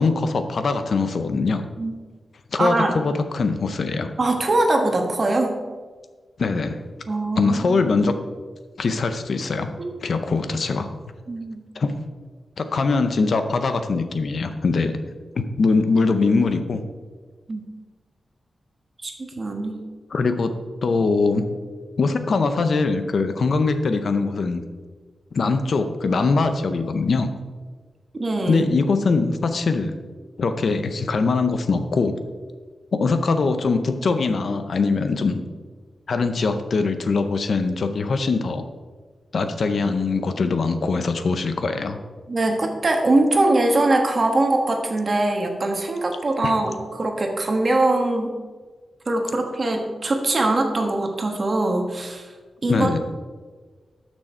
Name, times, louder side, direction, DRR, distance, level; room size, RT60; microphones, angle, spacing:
voice 1, 0.0-1.6 2.5-4.1 6.4-6.8 7.4-8.1 8.8-9.7 10.0-10.9 11.7-12.0 12.6-14.9 15.4-16.8 20.1-20.5 20.8-21.4 22.0-24.6 25.3-27.3 28.5-30.0 30.4-32.2 32.9-35.4 36.1-38.6 39.3-42.0 46.4-46.6 52.7-53.0, left 4 dB, 55° left, 8 dB, 0.7 m, -22 dB
voice 2, 2.6-2.9 4.2-5.5 7.1-8.0 9.8-10.0 11.3-11.6 17.5-17.7 19.0-19.8 28.2-28.7 42.3-48.3 49.1-52.3 52.6-53.0, right 2 dB, 35° right, 3 dB, 1.4 m, -22 dB
13.0 x 6.3 x 4.4 m, 1.5 s
wide cardioid pair, 145°, 0 cm